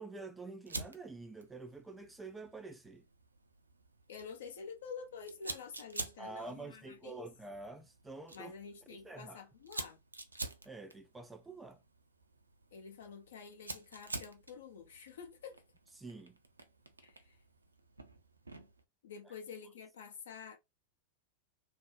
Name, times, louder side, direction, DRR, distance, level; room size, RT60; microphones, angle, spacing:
voice 1, 0.0-3.0 6.2-8.5 9.0-9.4 10.7-11.8 16.0-16.4 19.3-19.4, right 3 dB, 10° right, 0.3 m, -47 dB
Fire, 0.7-18.8, right 2 dB, 80° right, 0.4 m, -49 dB
voice 2, 4.1-7.3 8.3-10.0 12.7-15.6 17.0-17.4 19.0-20.6, left 6 dB, 60° left, 0.8 m, -49 dB
2.6 x 2.0 x 2.9 m
figure-of-eight pair, 90°, 0 cm